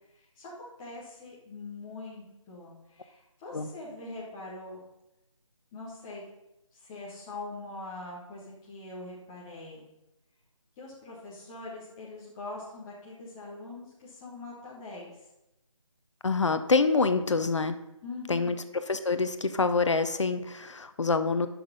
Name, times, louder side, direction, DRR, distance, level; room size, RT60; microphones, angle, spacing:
voice 1, 0.2-4.8 5.7-6.2 6.7-9.8 10.8-15.1 18.0-18.5, left 2 dB, 5° left, -6 dB, 0.6 m, -43 dB
voice 2, 16.2-17.8 18.3-18.6 18.9-21.5, left 4 dB, 60° left, 10 dB, 0.7 m, -26 dB
8.5 x 6.0 x 5.5 m, 0.90 s
figure-of-eight pair, 165°, 17 cm